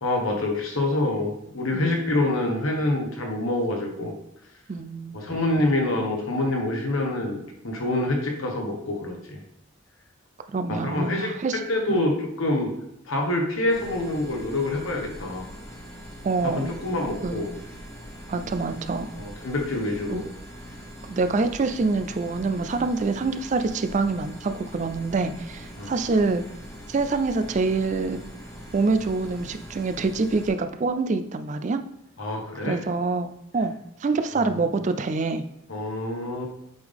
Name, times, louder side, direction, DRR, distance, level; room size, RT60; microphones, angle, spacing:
voice 1, 0.0-4.1 5.1-9.4 10.7-12.7 13.1-15.5 16.4-17.5 19.1-20.2 25.8-25.9 32.2-32.8 35.7-36.5, left 2 dB, 90° left, 2 dB, 1.3 m, -26 dB
voice 2, 4.7-5.3 10.5-11.6 11.9-12.1 16.2-16.7 17.2-17.5 18.3-19.1 20.1-20.2 21.1-26.4 26.9-28.2 28.7-31.8 32.6-33.7 34.0-35.4, right 3 dB, 35° right, 9 dB, 0.3 m, -26 dB
sound 1, 13.7-30.5, equal, 15° left, 1.3 m, -42 dB
7.8 x 3.7 x 3.5 m, 0.80 s
head